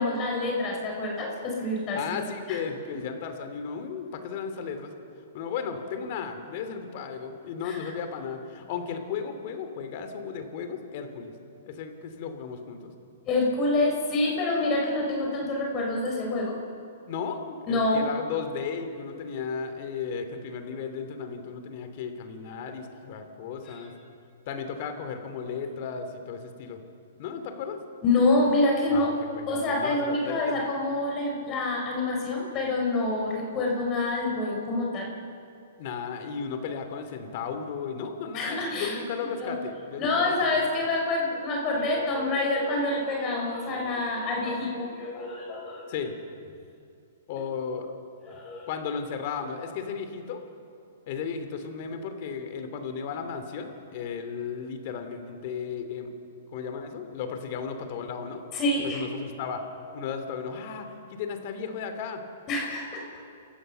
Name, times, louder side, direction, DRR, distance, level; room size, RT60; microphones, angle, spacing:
voice 1, 0.0-2.2 2.5-2.6 7.6-7.9 13.3-16.6 17.7-18.0 23.6-23.8 28.0-29.1 29.5-35.1 38.3-39.0 39.4-39.6 40.0-45.8 48.3-48.7 58.5-59.0 62.5-63.0, left 2 dB, 30° left, -1 dB, 5.3 m, -27 dB
voice 2, 1.9-4.9 5.3-11.3 11.7-12.9 17.1-23.9 24.5-26.8 27.2-27.8 28.9-30.6 35.8-40.6 43.5-43.6 45.9-46.1 47.3-48.0 48.7-50.4 51.1-56.1 56.5-58.5 58.8-59.6 59.9-62.2, left 6 dB, 50° left, 7 dB, 2.9 m, -35 dB
28.5 x 14.5 x 6.9 m, 2.5 s
hypercardioid pair, 130°, 0 cm